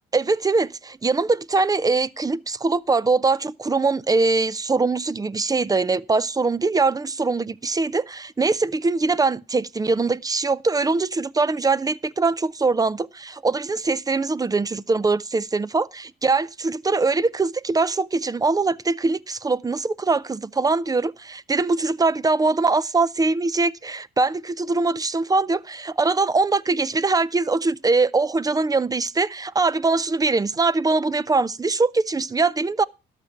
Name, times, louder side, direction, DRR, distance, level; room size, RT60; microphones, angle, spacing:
voice 1, 0.1-32.8, right 3 dB, 20° right, 0.5 m, -22 dB
12.5 x 5.9 x 7.1 m
cardioid pair, 90°, 20 cm